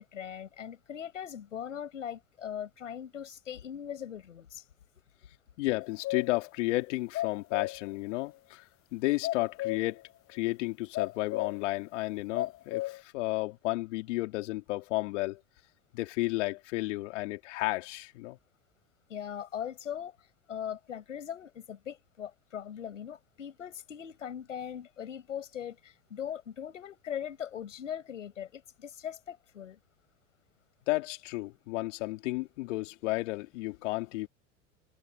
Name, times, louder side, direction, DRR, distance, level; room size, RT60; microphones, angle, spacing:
voice 1, 0.0-4.6 19.1-20.2 20.5-29.8, left 9 dB, 90° left, 5.7 m, -40 dB
voice 2, 5.6-8.6 8.9-10.0 10.3-15.4 15.9-18.4 30.9-34.3, left 20 dB, 70° left, 3.2 m, -32 dB
sound 1, 5.8-6.4 6.8-6.9 7.1-7.9 9.2-10.0 10.9-11.7 12.3-13.0, left 16 dB, 35° left, 0.6 m, -34 dB
hypercardioid pair, 85°, 37 cm